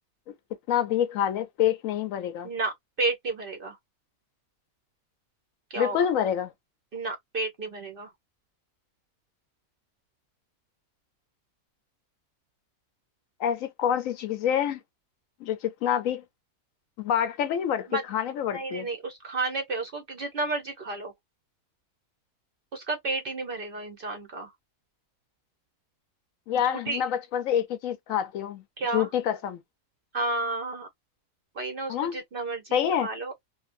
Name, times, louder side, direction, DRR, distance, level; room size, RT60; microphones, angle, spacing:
voice 1, 0.7-2.5 5.8-6.5 13.4-14.8 15.4-16.2 17.0-18.9 26.5-28.6 28.9-29.6 31.9-32.2 32.7-33.1, left 9 dB, 70° left, 0.9 m, -27 dB
voice 2, 2.4-3.8 5.7-6.1 6.9-8.1 17.9-18.0 18.5-21.1 22.7-24.5 26.6-27.0 28.8-29.1 30.1-30.9 31.5-33.4, right 3 dB, 55° right, 0.7 m, -32 dB
2.6 x 2.6 x 2.4 m
omnidirectional pair, 1.5 m